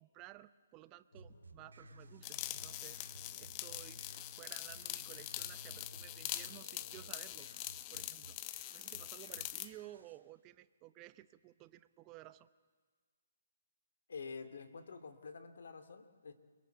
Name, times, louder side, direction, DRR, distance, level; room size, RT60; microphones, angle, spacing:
voice 1, 0.0-3.1 3.4-7.5 7.9-8.4 8.7-12.5, right 16 dB, 25° right, 14 dB, 0.8 m, -55 dB
sound 1, 1.1-7.6, left 1 dB, 90° left, 3.2 m, -57 dB
sound 2, 1.1-10.2, right 4 dB, 85° right, 2.6 m, -60 dB
sound 3, 2.2-9.7, left 15 dB, 25° left, 0.7 m, -44 dB
voice 2, 14.1-16.3, left 5 dB, 70° left, 8 dB, 2.6 m, -48 dB
29.0 x 22.5 x 8.0 m, 1.5 s
hypercardioid pair, 150°, 0 cm